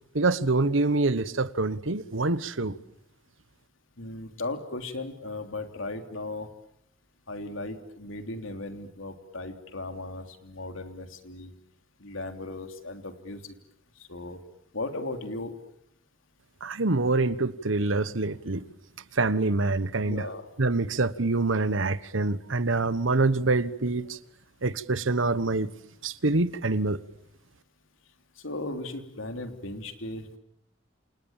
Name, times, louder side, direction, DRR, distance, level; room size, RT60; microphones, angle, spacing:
voice 1, 0.1-2.8 16.6-18.6 19.2-20.3 20.6-24.2 24.6-25.7 26.0-27.0, right 3 dB, 75° right, 1.2 m, -25 dB
voice 2, 4.0-6.5 7.3-11.5 12.0-13.5 14.0-14.4 14.7-15.5 20.0-20.5 28.4-30.4, left 2 dB, 85° left, 3.3 m, -37 dB
28.5 x 28.0 x 7.3 m
head